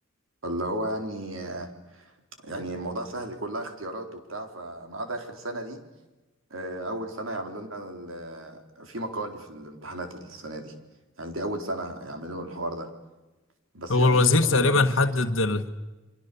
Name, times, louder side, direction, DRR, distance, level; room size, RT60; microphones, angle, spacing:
voice 1, 0.4-2.1 2.4-5.8 6.5-10.7 11.2-12.9 13.7-15.1, right 1 dB, 85° right, 5 dB, 3.9 m, -34 dB
voice 2, 13.9-15.7, left 3 dB, 75° left, 5 dB, 1.5 m, -21 dB
30.0 x 24.5 x 7.0 m, 1.1 s
head